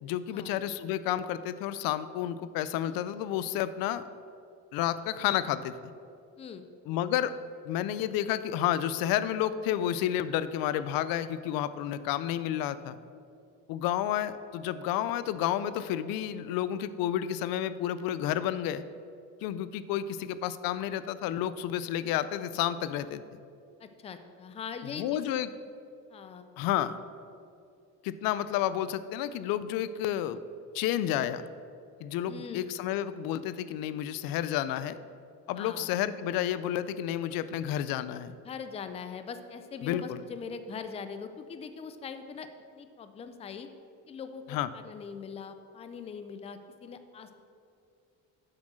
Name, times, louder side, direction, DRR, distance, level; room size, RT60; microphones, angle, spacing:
voice 1, 0.0-4.0 4.7-5.7 6.9-7.3 7.6-12.9 13.7-18.8 19.4-23.2 24.9-25.5 26.6-26.9 28.0-30.4 30.7-31.5 32.0-35.0 35.5-38.4 39.8-40.2 44.5-44.7, left 11 dB, 90° left, 14 dB, 0.5 m, -30 dB
voice 2, 23.8-25.4 26.1-26.5 26.8-26.9 32.3-32.7 35.6-35.9 38.4-42.5 42.7-43.7 44.1-47.3, left 6 dB, 20° left, 9 dB, 0.4 m, -41 dB
7.6 x 6.2 x 6.2 m, 2.5 s
cardioid pair, 155°, 34 cm